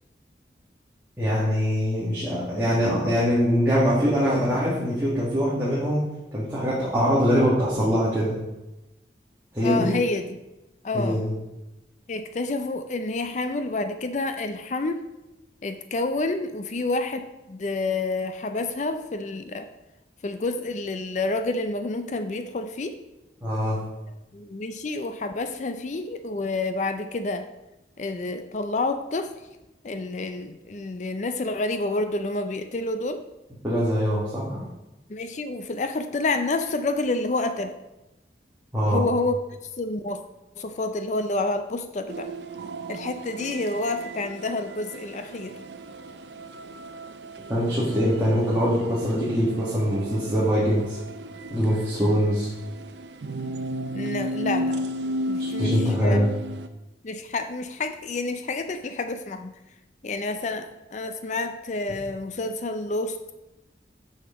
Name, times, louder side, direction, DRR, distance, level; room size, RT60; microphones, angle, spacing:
voice 1, 1.2-6.0 6.3-8.3 9.5-9.9 10.9-11.3 23.4-23.8 33.6-34.6 38.7-39.0 47.5-51.0 51.5-52.5 55.4-56.3, equal, 15° right, -9 dB, 1.9 m, -23 dB
voice 2, 9.6-10.4 10.8-11.2 12.1-15.0 15.6-19.7 20.2-23.0 24.3-27.5 28.0-29.3 29.8-33.2 35.1-37.7 38.9-39.3 39.8-40.2 40.6-42.3 42.9-45.5 53.9-54.9 55.3-56.3 57.0-59.5 60.0-60.7 60.9-63.2, left 2 dB, 40° left, 9 dB, 0.4 m, -29 dB
sound 1, 42.1-56.7, right 1 dB, 75° right, 0.6 m, -34 dB
6.6 x 6.5 x 5.1 m, 0.98 s
head